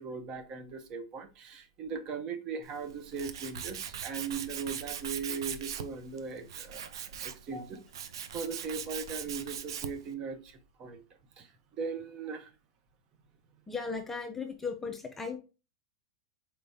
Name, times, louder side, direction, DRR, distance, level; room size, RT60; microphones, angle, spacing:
voice 1, 0.0-7.8 8.3-11.0 11.4-12.5, right 5 dB, 30° right, 9 dB, 0.7 m, -39 dB
Tools, 2.6-10.1, right 8 dB, 80° right, 0.6 m, -40 dB
voice 2, 13.7-15.4, left 4 dB, 10° left, 5 dB, 0.4 m, -37 dB
4.3 x 3.4 x 2.6 m, 0.30 s
supercardioid pair, 155°, 2 cm